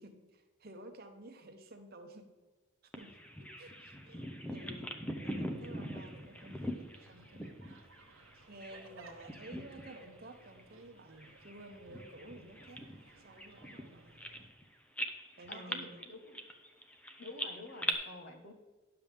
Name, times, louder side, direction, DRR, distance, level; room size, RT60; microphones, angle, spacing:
voice 1, 0.0-2.3 2.9-4.9 5.2-7.6 8.5-12.8 13.2-14.2 15.4-16.1, right 1 dB, 45° right, 5 dB, 0.9 m, -52 dB
Bird vocalization bird call bird song, 2.9-8.9 9.2-10.1 10.4-10.6 11.2-14.6 15.0-17.9, equal, 5° left, 0.6 m, -42 dB
sound 1, 5.5-14.5, right 3 dB, 70° right, 1.0 m, -60 dB
voice 2, 15.5-16.4 17.2-18.5, left 2 dB, 50° left, 4 dB, 1.2 m, -49 dB
10.0 x 6.9 x 3.5 m, 1.3 s
head